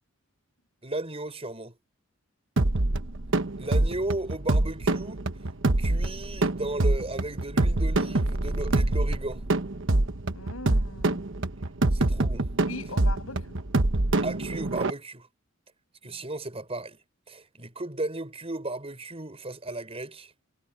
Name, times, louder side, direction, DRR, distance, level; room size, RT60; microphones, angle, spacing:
voice 1, 0.8-1.7 3.6-5.3 5.8-9.5 11.9-12.5 14.2-15.3 16.0-17.0 17.3-20.3, right 2 dB, 30° right, 6.3 m, -35 dB
sound 1, 2.6-14.9, right 2 dB, 60° right, 1.2 m, -25 dB
voice 2, 10.3-11.2 12.7-13.6 16.0-16.2, left 2 dB, 75° left, 7.6 m, -40 dB
head